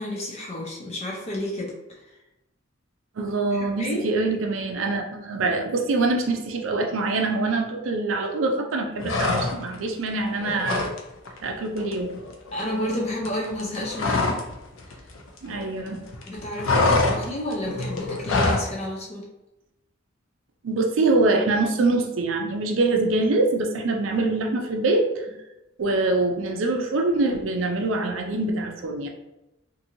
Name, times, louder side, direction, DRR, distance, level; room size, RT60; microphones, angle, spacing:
voice 1, 0.0-2.1 3.5-4.1 12.5-14.4 14.9-15.0 16.3-19.3, left 1 dB, 30° left, -2 dB, 0.5 m, -31 dB
voice 2, 3.2-10.8 11.4-12.2 15.4-16.0 20.6-25.3 25.8-29.1, right 2 dB, 75° right, 3 dB, 0.4 m, -24 dB
sound 1, 9.0-9.8 10.1-11.0 11.3-11.5 11.8-14.5 14.8-15.9 16.1-18.7, left 2 dB, 80° left, 0.5 m, -25 dB
2.9 x 2.6 x 2.6 m, 0.95 s
head